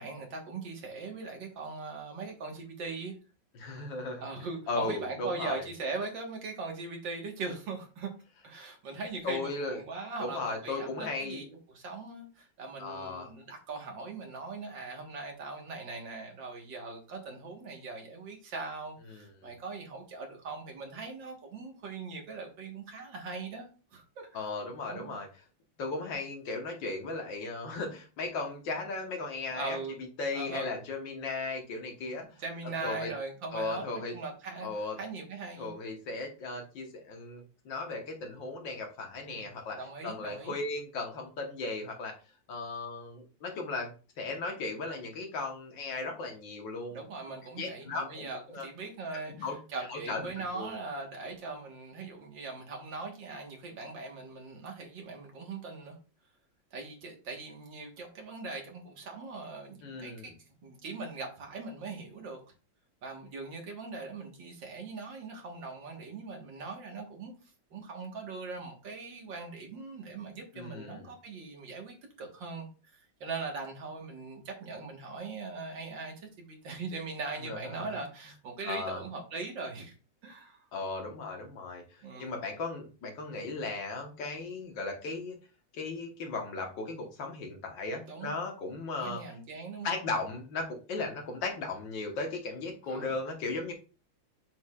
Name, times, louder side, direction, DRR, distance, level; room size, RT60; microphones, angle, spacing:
voice 1, 0.0-3.2 4.2-8.1 8.4-24.5 24.9-25.2 29.5-30.0 30.3-30.8 32.0-32.1 32.4-35.7 39.2-39.5 39.8-40.6 46.9-56.0 56.7-60.3 60.6-62.4 63.0-67.3 67.7-79.9 80.2-80.6 82.0-82.3 88.0-88.3 89.0-89.9 92.9-93.1, right 3 dB, 70° right, 2.2 m, -40 dB
voice 2, 3.6-4.2 4.7-5.7 9.2-9.8 10.2-11.5 12.8-13.3 19.1-19.5 24.3-25.3 25.8-29.8 30.2-32.3 32.8-33.1 33.5-34.1 34.6-35.0 35.6-39.8 40.0-42.1 42.5-47.0 47.6-48.7 49.3-49.6 49.9-50.2 50.5-50.7 59.8-60.3 70.5-71.1 77.4-78.0 78.6-79.0 80.7-81.8 82.2-85.4 85.7-89.2 89.8-93.7, left 3 dB, 70° left, 2.0 m, -36 dB
7.0 x 6.3 x 2.4 m
omnidirectional pair, 2.1 m